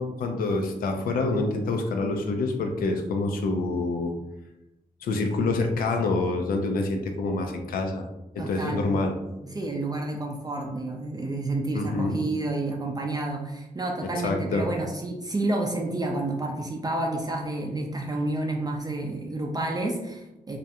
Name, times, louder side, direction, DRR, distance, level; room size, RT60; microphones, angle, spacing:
voice 1, 0.0-4.1 5.0-8.1 8.4-9.2 9.6-9.7 11.7-12.2 14.2-14.7, left 3 dB, 85° left, 4 dB, 0.4 m, -27 dB
voice 2, 8.4-9.0 9.4-20.6, right 2 dB, 25° right, 1 dB, 0.4 m, -30 dB
2.4 x 2.1 x 2.8 m, 0.97 s
cardioid pair, 55°, 14 cm